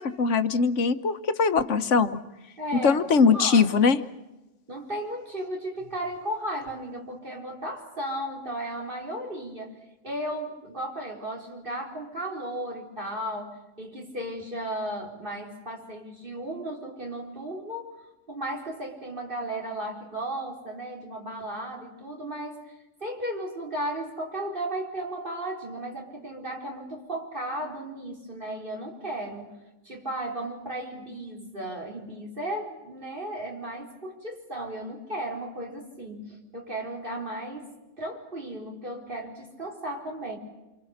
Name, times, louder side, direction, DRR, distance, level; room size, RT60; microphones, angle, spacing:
voice 1, 0.0-2.2 2.8-4.0, left 5 dB, 75° left, 11 dB, 1.4 m, -21 dB
voice 2, 2.6-3.0 3.3-3.7 4.7-9.8 10.0-18.0 18.3-40.4, right 1 dB, 45° right, 1 dB, 4.2 m, -35 dB
28.0 x 24.5 x 6.5 m, 1.0 s
omnidirectional pair, 1.2 m